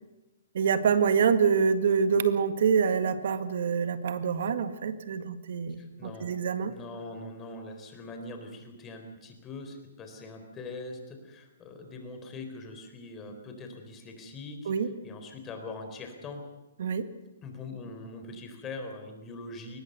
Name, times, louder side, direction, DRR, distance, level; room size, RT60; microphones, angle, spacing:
voice 1, 0.5-6.7 14.7-14.9 16.8-17.1, right 6 dB, 65° right, 10 dB, 1.8 m, -26 dB
voice 2, 5.8-6.4 6.7-14.7 15.0-16.4 17.4-19.8, left 2 dB, 20° left, 5 dB, 4.1 m, -42 dB
22.5 x 20.0 x 6.8 m, 1.0 s
hypercardioid pair, 140°, 0 cm